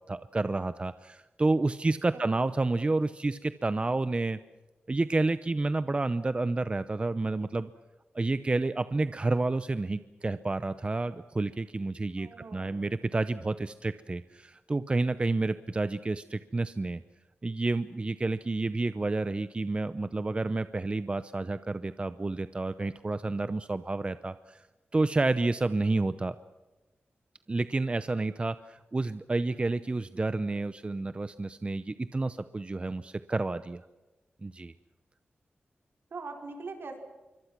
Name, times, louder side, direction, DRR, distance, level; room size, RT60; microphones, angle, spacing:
voice 1, 0.1-4.4 4.9-7.7 8.1-17.0 17.4-24.6 24.9-26.3 27.5-33.8 34.4-34.7, right 2 dB, 30° right, 13 dB, 0.7 m, -30 dB
voice 2, 12.2-12.9 36.1-37.0, right 4 dB, 70° right, 3 dB, 4.7 m, -42 dB
26.5 x 24.0 x 6.0 m, 1.1 s
wide cardioid pair, 100°, 4 cm